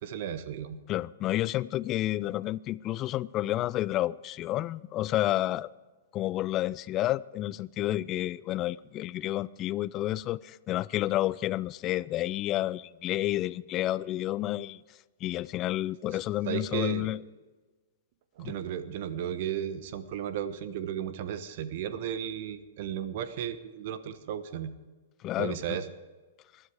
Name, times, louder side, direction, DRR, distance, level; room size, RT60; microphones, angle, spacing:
voice 1, 0.0-0.8 16.1-16.2 16.4-17.1 18.4-24.7 25.4-25.9, right 9 dB, 50° right, 1.2 m, -34 dB
voice 2, 0.9-5.7 6.1-14.8 15.2-17.2 18.4-18.6 25.2-25.8, left 15 dB, 30° left, 0.4 m, -30 dB
20.5 x 12.5 x 4.9 m
figure-of-eight pair, 110°, 0 cm